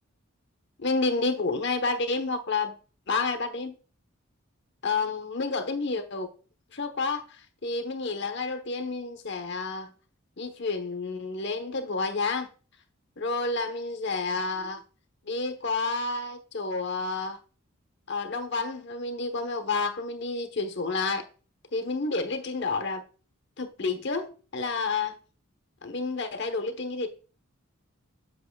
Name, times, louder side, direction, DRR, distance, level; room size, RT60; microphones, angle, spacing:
voice 1, 0.8-2.7 3.1-3.8 4.8-6.3 6.7-9.9 10.4-12.5 13.2-14.8 15.2-17.4 18.1-21.3 21.7-23.0 23.6-25.2 25.8-27.1, left 3 dB, 55° left, 1.1 m, -30 dB
8.2 x 7.6 x 2.3 m
head